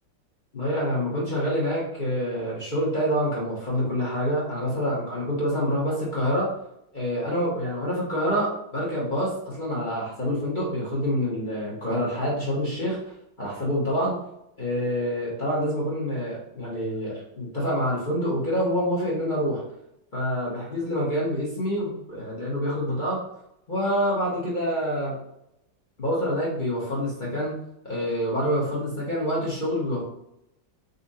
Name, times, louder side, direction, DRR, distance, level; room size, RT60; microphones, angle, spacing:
voice 1, 0.5-6.5 6.9-13.1 13.4-14.2 14.6-19.6 20.1-23.2 23.7-25.2 26.0-27.6 27.8-30.0, equal, 35° left, -6 dB, 0.9 m, -27 dB
4.1 x 2.6 x 4.1 m, 0.80 s
omnidirectional pair, 2.3 m